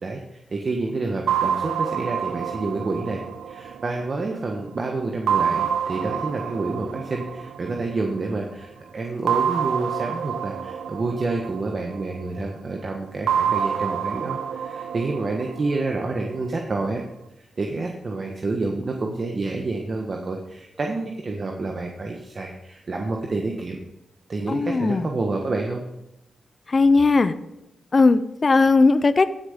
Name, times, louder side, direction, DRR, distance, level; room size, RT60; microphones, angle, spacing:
voice 1, 0.0-17.0 17.4-23.8 24.3-25.8, right 3 dB, 50° right, 2 dB, 1.4 m, -28 dB
sound 1, 1.3-4.6 5.3-8.2 9.3-12.4 13.3-16.4, right 8 dB, 85° right, 0.6 m, -27 dB
voice 2, 24.5-25.1 26.7-27.4 27.9-29.3, left 3 dB, 45° left, 13 dB, 0.6 m, -18 dB
15.5 x 6.7 x 5.1 m, 0.89 s
supercardioid pair, 50°, 0 cm